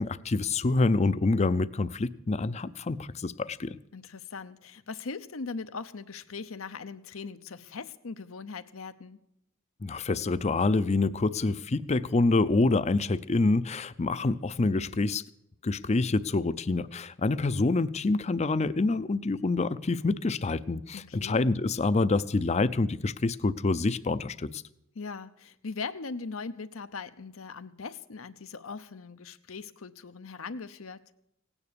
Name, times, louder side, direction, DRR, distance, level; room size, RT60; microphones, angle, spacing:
voice 1, 0.0-3.8 9.8-15.2 15.6-24.6, left 3 dB, 30° left, 15 dB, 0.5 m, -27 dB
voice 2, 3.9-9.2 20.9-21.4 24.9-31.0, left 4 dB, 85° left, 10 dB, 0.8 m, -40 dB
17.5 x 9.7 x 6.8 m, 0.81 s
head